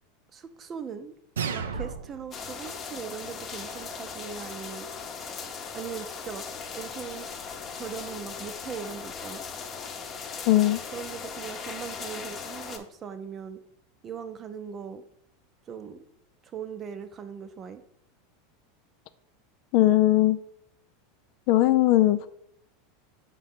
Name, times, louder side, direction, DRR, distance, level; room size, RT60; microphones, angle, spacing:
voice 1, 0.3-1.1 1.5-4.9 5.7-6.5 6.7-7.3 7.7-9.5 10.9-13.6 14.0-15.0 15.7-16.0 16.4-17.8, right 7 dB, 35° right, 10 dB, 0.6 m, -39 dB
sound 1, 1.4-2.4, right 6 dB, 80° right, 0.4 m, -32 dB
sound 2, 2.3-12.8, left 5 dB, 35° left, 0.8 m, -38 dB
voice 2, 10.5-10.8 19.7-20.4 21.5-22.3, left 15 dB, 55° left, 13 dB, 0.3 m, -19 dB
6.1 x 3.8 x 4.3 m, 0.72 s
hypercardioid pair, 90°, 0 cm